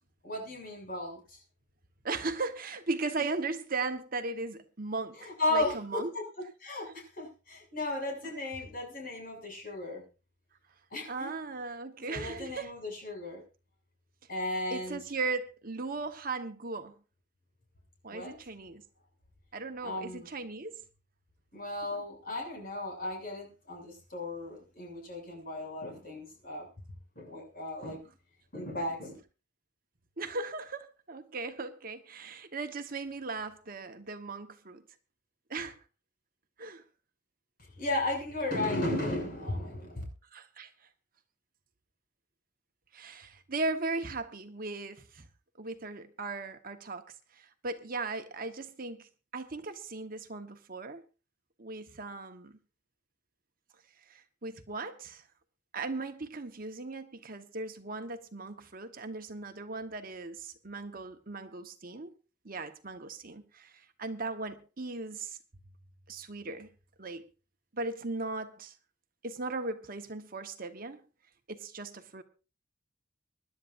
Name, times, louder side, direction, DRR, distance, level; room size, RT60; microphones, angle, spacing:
voice 1, 0.2-1.4 5.1-6.2 6.6-10.1 10.9-11.3 12.1-13.4 14.3-15.0 18.1-18.4 19.8-20.3 21.5-26.7 27.2-28.1 28.5-29.2 37.8-40.0, left 2 dB, 50° left, 6.9 m, -35 dB
voice 2, 2.0-6.1 8.2-8.3 11.1-12.7 14.7-16.9 18.0-18.8 19.5-20.8 30.2-34.8 35.5-35.8 36.6-36.8 40.3-40.7 42.9-45.2 45.6-51.0 51.6-52.6 54.1-55.2 55.7-62.1 62.4-65.4 66.1-66.7 67.0-67.3 67.7-68.7 69.2-71.0 71.5-72.2, right 3 dB, 50° right, 1.2 m, -37 dB
25.5 x 11.5 x 2.6 m
head